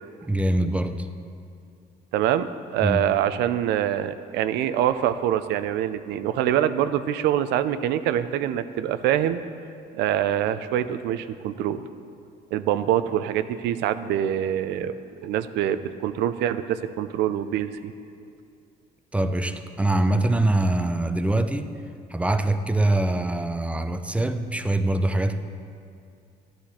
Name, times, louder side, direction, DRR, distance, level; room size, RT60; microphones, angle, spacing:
voice 1, 0.2-1.1 2.8-3.1 19.1-21.7 22.1-25.4, right 1 dB, 5° right, 8 dB, 0.6 m, -23 dB
voice 2, 2.1-9.4 9.9-11.8 12.5-15.0 15.2-17.9, right 11 dB, 85° right, 12 dB, 0.6 m, -25 dB
14.5 x 10.5 x 4.3 m, 2.4 s
cardioid pair, 110°, 17 cm